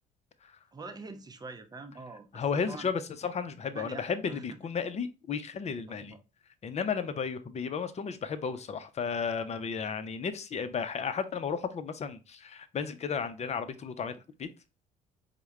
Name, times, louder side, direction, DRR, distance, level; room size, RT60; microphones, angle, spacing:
voice 1, 0.7-2.9 3.7-4.6 5.9-6.2, right 3 dB, 20° right, 0.6 m, -45 dB
voice 2, 2.3-6.2 6.6-14.5, left 6 dB, 35° left, 0.6 m, -34 dB
4.5 x 2.1 x 3.0 m
hypercardioid pair, 55°, 21 cm